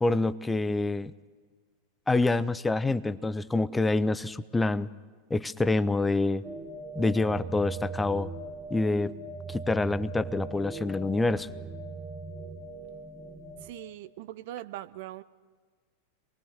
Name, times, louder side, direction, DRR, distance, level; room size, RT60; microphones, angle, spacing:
voice 1, 0.0-1.1 2.1-4.9 5.3-6.4 7.0-8.3 8.7-9.1 9.5-11.5, left 2 dB, 10° left, 17 dB, 0.6 m, -26 dB
sound 1, 6.4-13.7, right 3 dB, 10° right, 1.8 m, -39 dB
voice 2, 13.6-15.2, right 14 dB, 50° right, 14 dB, 0.7 m, -41 dB
27.0 x 21.0 x 6.5 m, 1.5 s
figure-of-eight pair, 90°, 0 cm